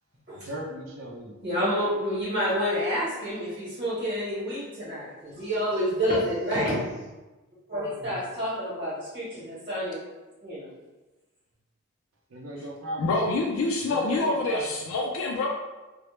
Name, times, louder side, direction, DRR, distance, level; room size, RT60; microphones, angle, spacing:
voice 1, 0.3-1.4 12.3-13.0 13.8-15.0, right 1 dB, 70° right, 0 dB, 0.5 m, -37 dB
voice 2, 1.4-6.8 7.7-10.0 10.4-10.7, equal, 40° right, -10 dB, 0.8 m, -28 dB
voice 3, 13.0-15.5, left 2 dB, 70° left, -1 dB, 0.3 m, -26 dB
2.0 x 2.0 x 3.0 m, 1.1 s
head